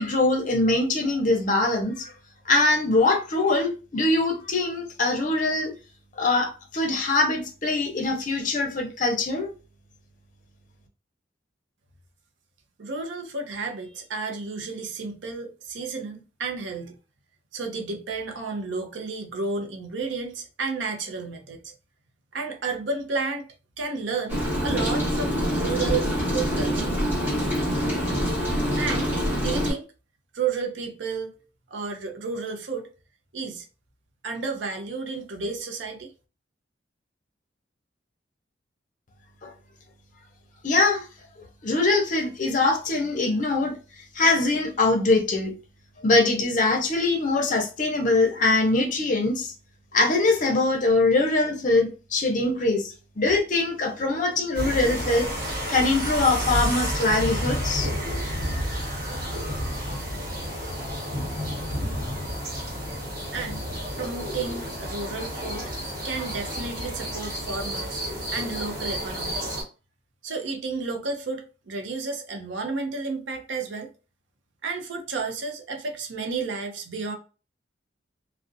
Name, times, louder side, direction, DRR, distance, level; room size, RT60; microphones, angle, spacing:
voice 1, 0.0-2.1 2.5-5.7 6.2-9.5 40.6-41.0 41.6-43.7 44.1-45.5 46.0-49.5 49.9-55.3 55.7-57.9, left 2 dB, 45° left, 0.6 m, -23 dB
voice 2, 12.8-16.9 17.5-21.7 22.3-23.5 23.8-27.0 28.8-29.9 30.3-31.4 31.7-32.9 33.3-33.7 34.2-36.1 63.3-63.6 64.0-65.6 66.0-68.0 68.3-69.6 70.2-73.9 74.6-77.1, right 4 dB, 75° right, 0.5 m, -32 dB
Rain, 24.3-29.7, equal, 10° right, 0.9 m, -25 dB
sound 1, 54.5-69.6, equal, 50° right, 1.1 m, -30 dB
2.4 x 2.1 x 2.5 m
head